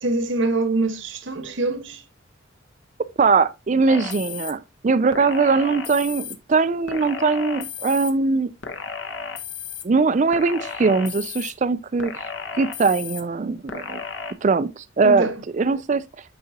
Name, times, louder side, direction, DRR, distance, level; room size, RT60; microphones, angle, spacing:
voice 1, 0.0-2.0 15.0-15.3, right 2 dB, 80° right, 1.5 m, -24 dB
voice 2, 3.2-8.5 9.8-12.3 12.6-14.0 14.4-15.3 15.5-16.0, right 4 dB, 40° right, 0.4 m, -21 dB
sound 1, 3.9-4.5 5.1-6.4 6.9-8.1 8.6-9.8 10.3-11.5 12.0-13.2 13.7-14.3, left 6 dB, 70° left, 1.1 m, -33 dB
9.4 x 5.7 x 2.8 m
head